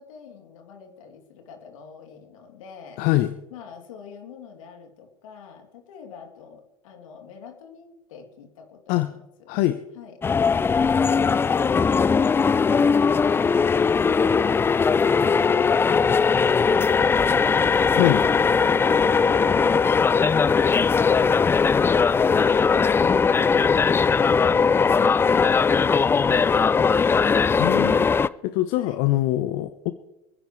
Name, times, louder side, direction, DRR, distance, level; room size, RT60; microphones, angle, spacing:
voice 1, 0.0-3.0 3.5-9.6 9.9-10.2 28.7-29.0, left 6 dB, 70° left, 3 dB, 3.1 m, -45 dB
voice 2, 3.0-3.3 8.9-9.1 9.5-9.8 18.0-18.2 27.6-28.1 28.4-29.9, left 15 dB, 50° left, 11 dB, 0.9 m, -23 dB
sound 1, 10.2-28.3, left 5 dB, 15° left, 0.4 m, -19 dB
27.5 x 10.5 x 3.3 m, 0.97 s
hypercardioid pair, 95°, 18 cm